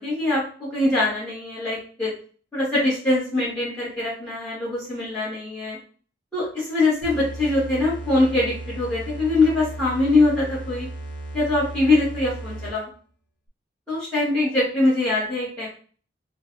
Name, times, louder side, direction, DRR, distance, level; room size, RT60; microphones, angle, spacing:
voice 1, 0.0-2.1 2.5-5.8 6.3-10.9 11.3-12.9 13.9-15.7, left 2 dB, 10° left, -12 dB, 1.5 m, -23 dB
sound 1, 7.0-12.9, right 1 dB, 90° left, 0.7 m, -35 dB
3.8 x 2.3 x 2.6 m, 0.42 s
head